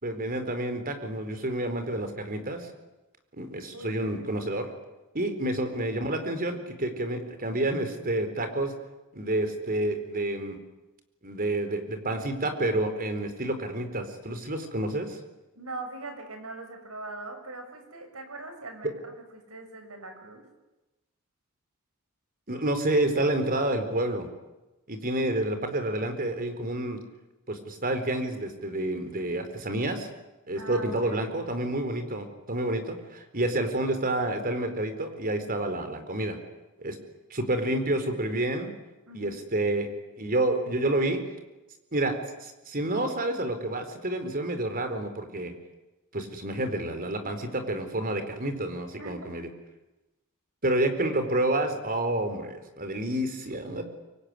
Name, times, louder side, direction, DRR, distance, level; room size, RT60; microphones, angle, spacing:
voice 1, 0.0-2.7 3.4-4.7 5.1-8.7 9.1-10.6 11.2-15.2 18.8-18.9 22.5-24.3 24.9-27.0 27.5-30.1 30.5-36.4 36.8-37.0 37.3-38.7 39.1-39.9 40.2-41.2 41.9-42.1 42.4-45.5 46.1-49.5 50.6-53.8, right 1 dB, 40° right, 8 dB, 4.3 m, -29 dB
voice 2, 3.7-4.6 15.5-20.4 30.5-31.3 39.1-39.4 49.0-49.3, right 2 dB, 70° right, 6 dB, 6.4 m, -42 dB
25.5 x 23.5 x 9.9 m, 1.0 s
head